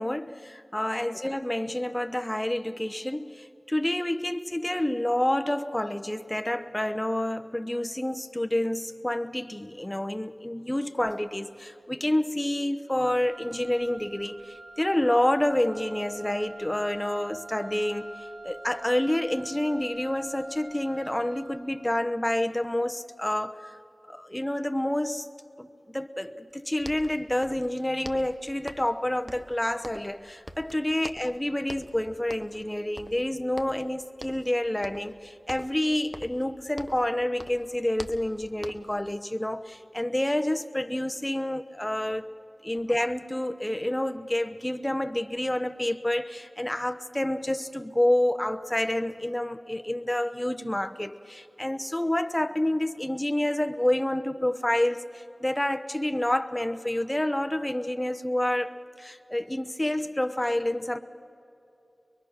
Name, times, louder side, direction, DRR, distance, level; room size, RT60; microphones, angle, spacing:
voice 1, 0.0-23.8 24.1-25.3 25.6-42.3 42.6-61.0, left 1 dB, 15° left, 1.0 m, -28 dB
Wind instrument woodwind instrument, 13.0-21.7, right 2 dB, 70° right, 2.7 m, -46 dB
sound 1, 26.5-26.6 26.8-27.7 28.0-29.0 29.3-30.2 30.5-31.4 31.7-32.0 32.3-32.7 33.0-33.9 34.2-34.5 34.8-35.2 35.5-37.1 37.4-39.0, equal, 10° right, 1.1 m, -43 dB
23.0 x 23.0 x 6.5 m
wide cardioid pair, 55°, 0 cm